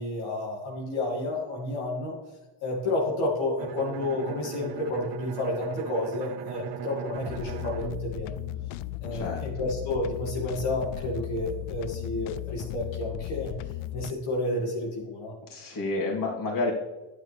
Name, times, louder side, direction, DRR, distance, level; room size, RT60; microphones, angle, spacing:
voice 1, 0.0-2.2 2.6-8.3 9.0-13.5 13.9-15.3, left 2 dB, 70° left, -3 dB, 2.5 m, -30 dB
Bowed string instrument, 3.6-9.3, right 8 dB, 55° right, 0.9 m, -39 dB
sound 1, 7.1-14.1, left 15 dB, 90° left, 0.6 m, -36 dB
voice 2, 9.1-9.6 15.4-16.7, left 2 dB, 40° left, -3 dB, 3.3 m, -30 dB
10.5 x 9.2 x 3.4 m, 1.1 s
cardioid pair, 110°, 50 cm